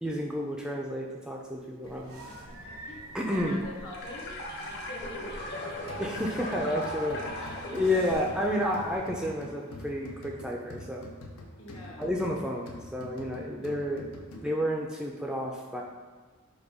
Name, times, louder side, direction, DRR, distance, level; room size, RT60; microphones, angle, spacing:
voice 1, 0.0-2.2 3.1-3.6 6.0-7.2 7.7-11.1 12.0-14.1 14.4-15.8, left 1 dB, 5° right, -1 dB, 0.4 m, -31 dB
sound 1, 1.8-9.0, right 1 dB, 80° right, 0.7 m, -47 dB
voice 2, 1.9-3.0 3.3-6.0 6.8-8.0 11.6-12.1, left 1 dB, 70° left, -3 dB, 1.2 m, -46 dB
sound 2, 3.9-9.6, left 1 dB, 50° left, 0.8 m, -39 dB
sound 3, 5.9-14.8, left 2 dB, 85° left, 0.7 m, -46 dB
4.9 x 2.3 x 4.7 m, 1.4 s
head